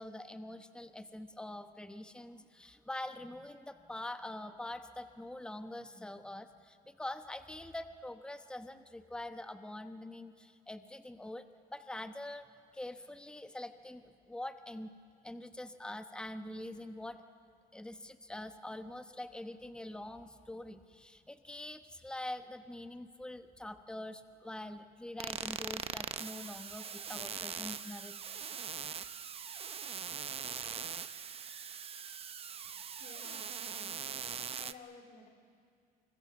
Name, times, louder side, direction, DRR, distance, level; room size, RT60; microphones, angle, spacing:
voice 1, 0.0-12.5 12.7-14.9 15.2-17.2 17.7-28.1, left 1 dB, 5° left, 9 dB, 1.0 m, -44 dB
sound 1, 25.2-34.7, right 7 dB, 35° right, 0.7 m, -41 dB
voice 2, 32.4-34.1 34.6-35.3, left 4 dB, 55° left, 3 dB, 3.6 m, -55 dB
25.5 x 23.5 x 7.3 m, 2.2 s
cardioid pair, 110°, 17 cm